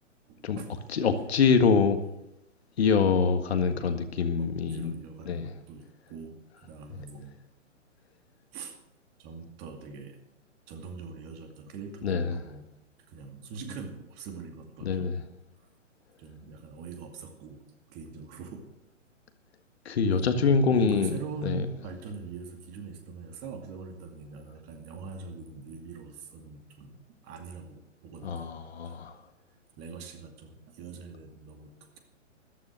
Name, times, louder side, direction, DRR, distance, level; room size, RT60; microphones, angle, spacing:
voice 1, 0.3-0.7 3.7-3.9 4.4-7.3 8.5-8.8 9.2-10.2 10.7-12.7 13.1-15.2 16.2-18.6 20.1-28.5 28.9-29.0 29.8-32.0, right 4 dB, 25° right, 4 dB, 2.3 m, -43 dB
voice 2, 0.9-2.0 2.8-4.9 5.3-5.5 12.0-12.4 14.8-15.1 19.9-21.2 21.4-21.6 28.2-29.2, left 5 dB, 55° left, 8 dB, 1.7 m, -25 dB
14.0 x 12.5 x 6.5 m, 0.85 s
figure-of-eight pair, 130°, 38 cm